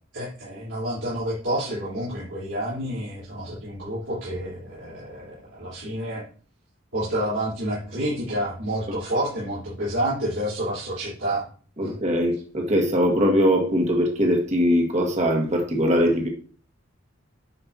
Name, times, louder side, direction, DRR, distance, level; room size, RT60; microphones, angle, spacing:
voice 1, 0.1-6.2 6.9-11.5 11.8-11.9, right 1 dB, 85° right, -10 dB, 4.0 m, -29 dB
voice 2, 11.8-16.3, equal, 35° right, 0 dB, 1.7 m, -21 dB
10.0 x 5.4 x 2.9 m, 0.41 s
head